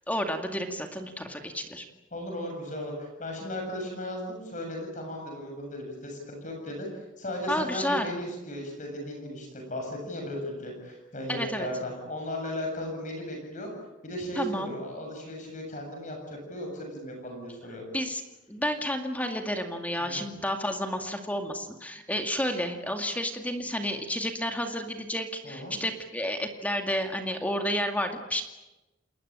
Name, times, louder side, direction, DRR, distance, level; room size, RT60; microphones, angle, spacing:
voice 1, 0.1-1.8 7.5-8.1 11.3-11.7 14.4-14.7 17.9-18.2 18.5-28.4, equal, 10° left, 5 dB, 2.2 m, -31 dB
voice 2, 2.1-13.7 14.0-17.8 20.0-20.3 25.4-25.8, equal, 40° left, 2 dB, 7.5 m, -36 dB
29.5 x 20.5 x 8.9 m, 1.0 s
head